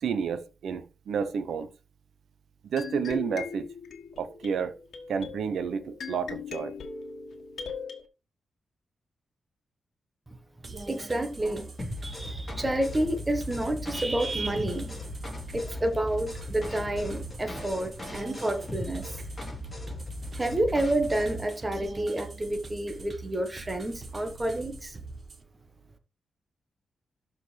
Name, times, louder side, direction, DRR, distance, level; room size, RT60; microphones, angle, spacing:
voice 1, 0.0-1.7 2.6-3.7 4.2-4.7 5.1-6.7, right 6 dB, 75° right, 0.8 m, -30 dB
sound 1, 2.8-8.0, left 6 dB, 70° left, 1.5 m, -40 dB
sound 2, 10.6-25.4, right 3 dB, 35° right, 1.2 m, -43 dB
voice 2, 10.9-11.7 12.0-15.0 15.5-19.2 20.3-25.0, right 1 dB, 15° right, 1.3 m, -29 dB
sound 3, 11.8-21.5, left 1 dB, 20° left, 4.0 m, -38 dB
12.5 x 5.1 x 3.3 m
wide cardioid pair, 125°, 0 cm